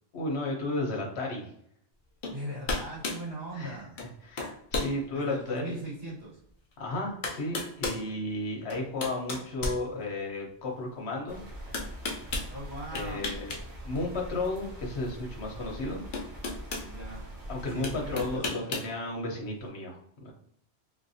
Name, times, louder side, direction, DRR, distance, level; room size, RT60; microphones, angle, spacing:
voice 1, 0.1-1.5 3.5-3.8 4.2-5.8 6.8-11.4 12.9-13.5 13.8-16.0 17.5-20.3, left 2 dB, 80° left, 0 dB, 1.2 m, -33 dB
sound 1, 2.2-2.4 2.7-3.2 4.0-4.1 4.4-4.9 5.5-5.6 6.7-6.8 7.2-8.0 8.7-10.4 11.7-12.5 12.9-13.6 13.9-14.1 15.5-15.6 16.1-16.9 17.8-18.9, left 3 dB, 55° left, 0.8 m, -33 dB
voice 2, 2.3-3.9 5.1-6.4 12.5-13.3 16.8-17.2 17.7-18.8, right 1 dB, 75° right, -8 dB, 2.0 m, -40 dB
sound 2, 11.3-18.4, equal, 55° right, 0.9 m, -43 dB
3.7 x 2.6 x 2.7 m, 0.70 s
omnidirectional pair, 1.1 m